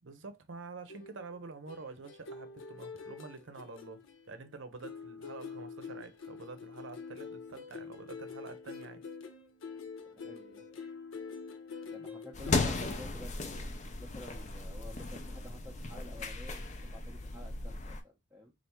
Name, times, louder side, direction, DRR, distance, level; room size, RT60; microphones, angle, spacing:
voice 1, 0.0-9.0, right 4 dB, 75° right, 0.6 m, -47 dB
sound 1, 0.9-4.5 4.8-13.0, left 5 dB, 85° left, 0.6 m, -46 dB
voice 2, 10.1-10.6 11.8-16.6 16.9-18.5, left 1 dB, 10° right, 0.6 m, -51 dB
sound 2, 12.3-18.0, left 3 dB, 35° left, 0.5 m, -36 dB
3.4 x 2.5 x 4.3 m
head